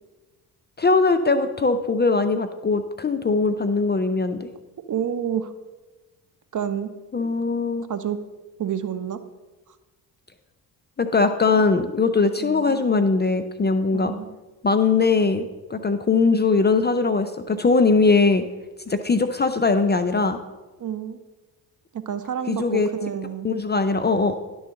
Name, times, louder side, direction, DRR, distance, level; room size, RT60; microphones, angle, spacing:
voice 1, 0.8-4.5 7.1-7.9 11.0-14.1 14.6-18.5 18.9-20.4 22.5-22.9 23.4-24.4, left 4 dB, 20° left, 8 dB, 0.6 m, -21 dB
voice 2, 4.9-5.5 6.5-6.9 7.1-7.3 7.9-8.2 8.6-9.2 12.4-12.8 13.9-14.3 20.8-21.2 21.9-23.5, right 8 dB, 40° right, 11 dB, 0.8 m, -29 dB
11.0 x 3.9 x 6.4 m, 1.2 s
hypercardioid pair, 50°, 49 cm